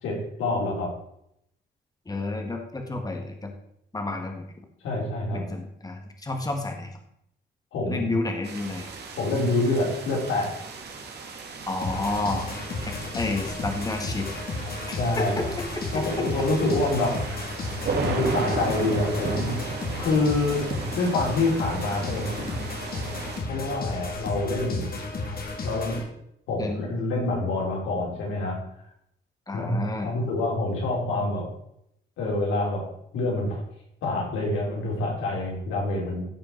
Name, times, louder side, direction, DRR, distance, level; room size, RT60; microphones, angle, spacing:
voice 1, 0.0-0.9 4.8-5.5 7.7-8.1 9.2-10.6 15.0-15.5 15.9-17.5 18.0-19.6 19.9-20.7 20.9-22.3 23.5-24.9 25.6-26.0 26.5-28.6 29.5-31.5 32.2-32.9 33.1-33.6 34.0-36.2, left 2 dB, 85° left, -2 dB, 4.1 m, -26 dB
voice 2, 2.1-3.5 3.9-4.6 5.3-6.9 7.8-8.9 11.7-12.5 12.9-14.3 14.9-15.5 16.2-16.3 26.6-26.9 29.5-30.1, left 2 dB, 20° left, 3 dB, 1.7 m, -30 dB
sound 1, 8.4-23.4, right 4 dB, 55° right, 2.1 m, -35 dB
sound 2, 11.8-26.0, left 3 dB, 50° left, 2.3 m, -33 dB
14.5 x 5.1 x 4.5 m, 0.74 s
cardioid pair, 90°, 20 cm